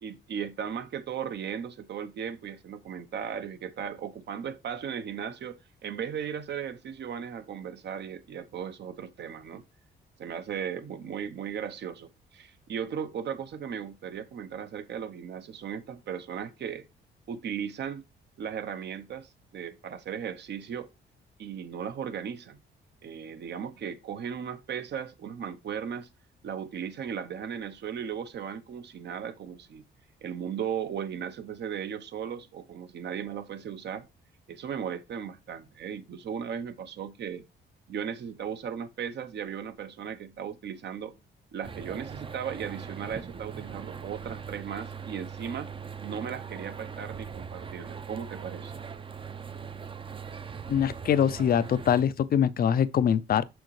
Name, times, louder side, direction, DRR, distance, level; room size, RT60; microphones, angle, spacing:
voice 1, 0.0-9.6 10.2-16.9 17.3-18.0 18.4-20.9 21.4-22.6 23.0-26.1 26.4-29.8 30.2-34.1 34.5-37.4 37.9-41.2 41.5-45.7 46.0-48.7, right 8 dB, 60° right, 0.8 m, -36 dB
sound 1, 41.6-52.0, right 6 dB, 25° right, 0.6 m, -41 dB
voice 2, 50.7-53.4, left 8 dB, 50° left, 0.5 m, -24 dB
6.3 x 6.3 x 3.2 m
cardioid pair, 90°, 20 cm